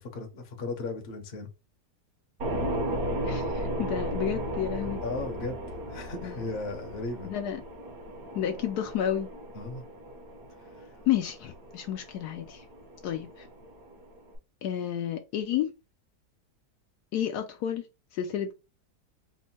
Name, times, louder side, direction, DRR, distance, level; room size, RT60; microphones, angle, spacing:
voice 1, 0.0-1.5 5.0-5.6 5.9-7.3 9.5-9.8 10.8-10.9, left 3 dB, 45° left, 0.9 m, -36 dB
sound 1, 2.4-14.4, right 1 dB, 65° right, 1.4 m, -36 dB
voice 2, 3.2-5.0 6.2-6.4 7.2-7.6 8.3-9.3 11.1-12.6 13.0-13.5 14.6-15.7 17.1-17.9 18.1-18.5, left 10 dB, 75° left, 1.1 m, -31 dB
3.5 x 2.1 x 4.2 m
omnidirectional pair, 1.8 m